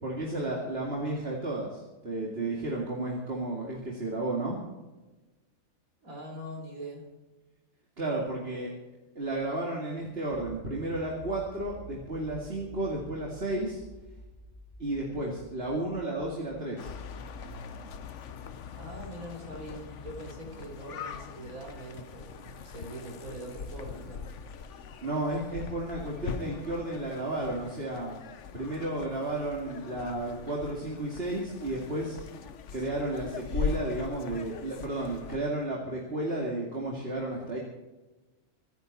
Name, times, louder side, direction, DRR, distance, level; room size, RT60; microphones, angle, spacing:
voice 1, 0.0-4.6 8.0-8.7 9.2-13.8 14.8-17.0 25.0-28.1 28.5-32.2 32.7-37.6, right 2 dB, 45° right, -2 dB, 2.5 m, -33 dB
voice 2, 6.0-7.1 18.7-24.3, right 1 dB, 80° right, 1 dB, 4.0 m, -43 dB
Accelerating revving vroom, 10.3-17.5, equal, 20° left, 5.5 m, -49 dB
sound 1, 16.8-35.4, left 6 dB, 60° left, 1.1 m, -41 dB
25.0 x 10.0 x 4.2 m, 1.2 s
omnidirectional pair, 1.5 m